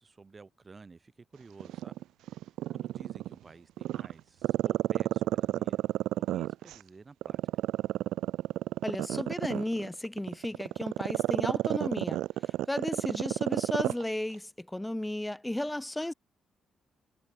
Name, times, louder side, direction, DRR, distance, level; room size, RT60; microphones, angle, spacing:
voice 1, 0.0-2.0 2.7-5.8 6.3-7.4, right 4 dB, 35° right, 3.3 m, -52 dB
Growling, 1.6-3.3 3.8-6.8 7.2-14.0 14.3-14.4, right 14 dB, 85° right, 0.5 m, -30 dB
voice 2, 8.8-16.1, left 1 dB, 10° left, 0.5 m, -34 dB
cardioid pair, 70°, 0 cm